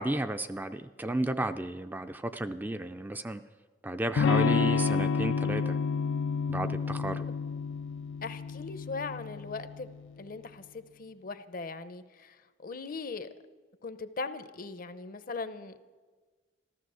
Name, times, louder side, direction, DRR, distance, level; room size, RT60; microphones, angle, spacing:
voice 1, 0.0-3.4 3.8-5.8 6.5-7.3, right 1 dB, 10° right, 9 dB, 0.4 m, -33 dB
Electric guitar / Strum, 4.2-9.9, left 5 dB, 80° left, 0.4 m, -29 dB
voice 2, 8.2-9.9 10.2-12.4 12.6-13.3 13.8-15.8, left 4 dB, 50° left, 12 dB, 0.7 m, -39 dB
14.0 x 14.0 x 6.3 m, 1.4 s
head